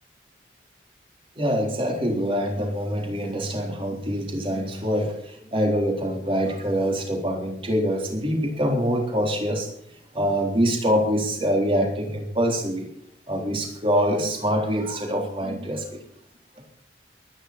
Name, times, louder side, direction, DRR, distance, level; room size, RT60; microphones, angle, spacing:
voice 1, 1.4-9.7 10.1-12.9 13.3-16.0, equal, 30° right, 2 dB, 3.8 m, -25 dB
23.0 x 10.5 x 4.4 m, 0.71 s
head